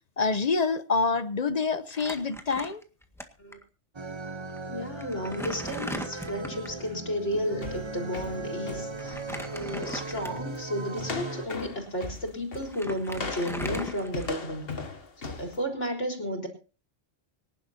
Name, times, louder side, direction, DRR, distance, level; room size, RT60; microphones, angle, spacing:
voice 1, 0.2-2.8, left 4 dB, 40° left, 0.8 m, -26 dB
Crumpling crinkling, 1.9-3.2 3.5-3.6 4.5-4.6 5.0-6.8 9.0-10.6 11.2-11.3 12.2-12.3 12.5-14.6, equal, ahead, 1.7 m, -39 dB
sound 1, 3.9-11.5, right 3 dB, 25° right, 0.9 m, -38 dB
voice 2, 4.7-9.2 9.5-14.7 15.2-16.5, equal, 85° left, 4.3 m, -33 dB
sound 2, 7.3-9.5 9.9-10.1 10.5-10.7 11.0-15.6, left 3 dB, 55° left, 1.8 m, -38 dB
25.5 x 11.0 x 2.8 m
omnidirectional pair, 1.2 m